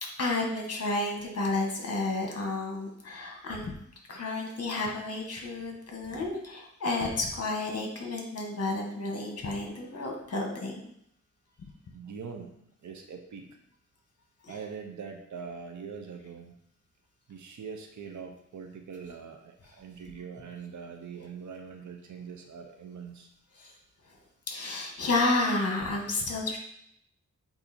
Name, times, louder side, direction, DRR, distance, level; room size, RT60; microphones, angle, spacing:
voice 1, 0.0-3.7 4.1-10.8 14.4-14.6 23.5-23.7 24.5-26.6, left 2 dB, 55° left, 0 dB, 1.6 m, -31 dB
voice 2, 11.9-12.5 12.8-13.5 14.5-16.6 17.3-23.3, right 6 dB, 80° right, 4 dB, 0.7 m, -42 dB
8.1 x 2.8 x 4.3 m, 0.71 s
wide cardioid pair, 140°, 29 cm